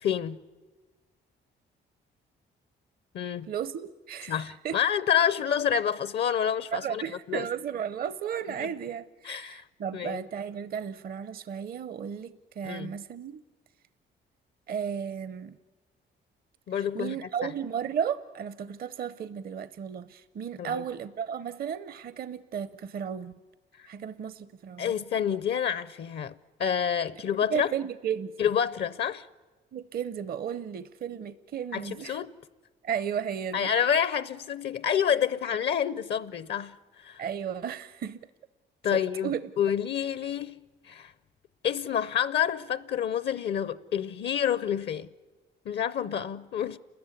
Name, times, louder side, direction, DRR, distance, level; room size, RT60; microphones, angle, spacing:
voice 1, 0.0-0.4 3.1-3.5 4.3-7.0 7.3-7.5 8.6-8.7 9.2-9.6 9.9-10.2 12.6-12.9 16.7-17.2 20.6-20.8 24.8-27.7 28.4-29.3 31.7-32.3 33.5-36.8 37.0-37.2 38.8-41.1 41.6-45.1 45.7-46.8, left 8 dB, 60° left, 0.6 m, -28 dB
voice 2, 3.5-4.8 6.7-13.4 14.7-15.6 16.8-23.3 23.9-24.9 27.5-28.3 29.7-32.2 32.8-33.7 37.2-38.2 38.9-39.4, right 8 dB, 50° right, 0.6 m, -34 dB
29.5 x 13.5 x 9.7 m
cardioid pair, 90°, 20 cm